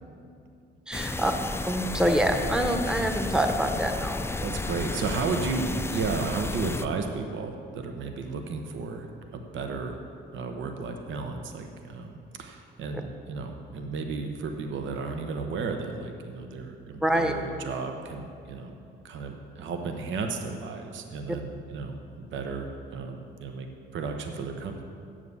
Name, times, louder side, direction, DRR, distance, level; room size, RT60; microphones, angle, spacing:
sound 1, 0.9-6.9, left 3 dB, 10° left, 0.4 m, -32 dB
voice 1, 0.9-1.3 1.7-4.2 17.0-17.3, right 1 dB, 5° right, 5 dB, 0.9 m, -25 dB
voice 2, 4.4-9.1 9.3-10.0 10.3-18.7 19.0-24.8, right 4 dB, 75° right, 5 dB, 0.9 m, -33 dB
7.4 x 7.2 x 8.2 m, 2.4 s
cardioid pair, 90°, 20 cm